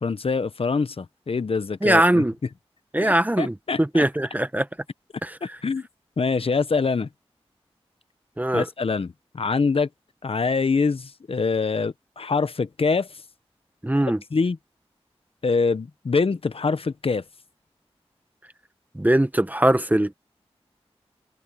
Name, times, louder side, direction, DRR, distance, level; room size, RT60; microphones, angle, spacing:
voice 1, 0.0-2.2 3.0-4.0 5.4-5.8 6.2-7.1 8.5-9.9 10.2-13.1 14.3-14.6 15.4-17.2, left 4 dB, 60° left, 0.9 m, -24 dB
voice 2, 1.8-2.3 2.9-4.7 5.2-5.4 8.4-8.7 13.8-14.2 18.9-20.1, right 1 dB, 15° right, 1.5 m, -21 dB
open air
cardioid pair, 45°, 11 cm